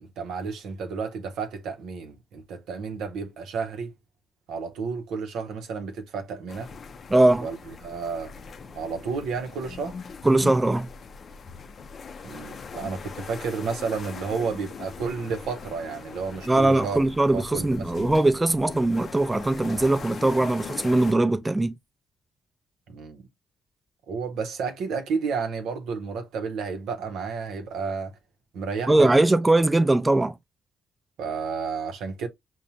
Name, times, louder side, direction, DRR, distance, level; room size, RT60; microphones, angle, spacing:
voice 1, 0.0-3.9 4.5-6.7 7.4-7.6 7.8-8.3 8.7-10.0 12.2-17.0 17.3-18.1 22.9-23.2 24.1-28.1 28.5-29.1 31.2-32.3, right 5 dB, 80° right, 0.6 m, -31 dB
sound 1, 6.5-21.1, left 5 dB, 55° left, 0.4 m, -41 dB
voice 2, 7.1-7.5 10.2-10.9 16.5-21.7 28.9-30.3, right 2 dB, 20° right, 0.5 m, -21 dB
5.4 x 2.1 x 2.7 m
supercardioid pair, 60°, 0 cm